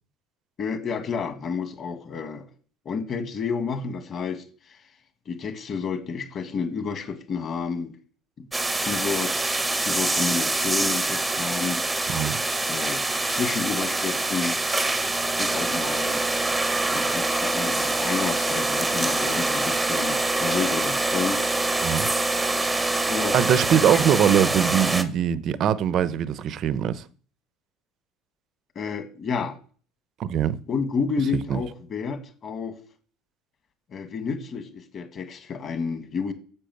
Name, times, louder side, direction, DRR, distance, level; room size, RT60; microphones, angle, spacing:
voice 1, 0.6-2.4 2.8-4.8 5.2-7.9 8.4-8.5 8.8-11.8 12.7-14.6 15.4-16.3 16.7-21.4 23.1-23.5 23.7-24.1 28.7-29.6 30.7-32.7 33.9-36.3, left 5 dB, 30° left, 1.7 m, -30 dB
sound 1, 8.5-25.0, right 2 dB, 5° right, 0.8 m, -25 dB
voice 2, 23.3-27.0 30.2-30.6 31.5-31.6, right 9 dB, 35° right, 0.7 m, -22 dB
10.0 x 7.5 x 7.8 m
cardioid pair, 175°, 0 cm